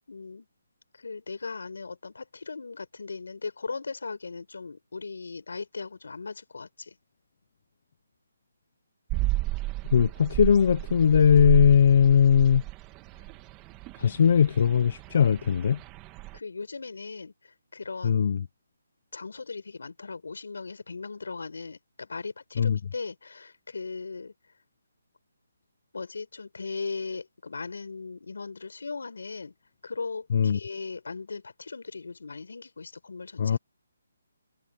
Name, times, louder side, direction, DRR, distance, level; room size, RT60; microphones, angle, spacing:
voice 1, 0.1-0.5 1.0-6.9 16.3-18.2 19.1-24.3 25.9-29.5 29.8-33.6, left 4 dB, 80° left, 5.0 m, -38 dB
sound 1, 9.1-16.4, right 19 dB, 15° right, 1.6 m, -33 dB
voice 2, 9.9-12.6 14.0-15.8 18.0-18.4 22.6-22.8 30.3-30.6 33.4-33.6, left 7 dB, 40° left, 0.7 m, -20 dB
hypercardioid pair, 175°, 0 cm